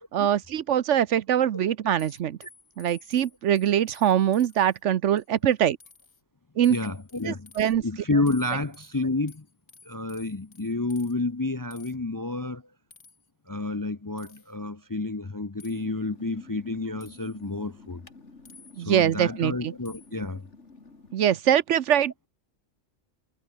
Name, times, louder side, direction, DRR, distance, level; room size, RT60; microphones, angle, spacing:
voice 1, 0.1-2.4 2.8-5.8 6.6-6.8 7.2-7.8 18.8-19.7 21.1-22.3, right 10 dB, 65° right, 1.0 m, -23 dB
sound 1, 2.0-4.8 5.2-5.5 5.8-6.2 6.6-7.7 8.3-11.1 11.7-11.9 12.9-13.3 14.2-14.5 15.6-15.8 17.0-17.5 18.4-19.0 19.9-20.2, left 4 dB, 80° left, 2.9 m, -53 dB
voice 2, 6.7-7.5 7.8-9.4 9.9-12.6 13.5-18.0 18.8-20.4, left 2 dB, 25° left, 0.5 m, -30 dB
sound 2, 15.6-21.1, left 3 dB, 60° left, 3.0 m, -51 dB
omnidirectional pair, 1.4 m